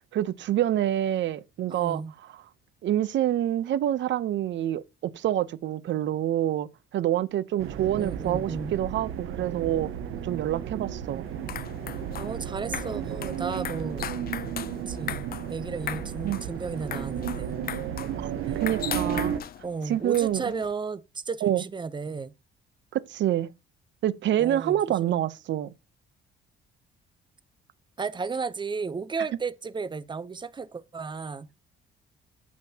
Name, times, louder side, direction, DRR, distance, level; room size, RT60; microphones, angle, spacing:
voice 1, 0.1-2.0 2.8-9.9 10.2-11.2 16.2-16.4 18.2-19.4 19.9-20.5 21.4-21.6 22.9-23.5 24.0-25.7, right 12 dB, 60° right, 0.7 m, -27 dB
voice 2, 1.7-2.1 8.0-8.8 12.2-14.1 14.9-17.6 18.5-18.6 19.6-22.3 24.4-25.1 28.0-31.5, right 4 dB, 20° right, 0.7 m, -34 dB
sound 1, 7.6-19.4, right 9 dB, 85° right, 1.2 m, -33 dB
sound 2, 11.3-20.7, left 10 dB, 45° left, 0.6 m, -39 dB
9.4 x 7.4 x 2.8 m
cardioid pair, 125°, 21 cm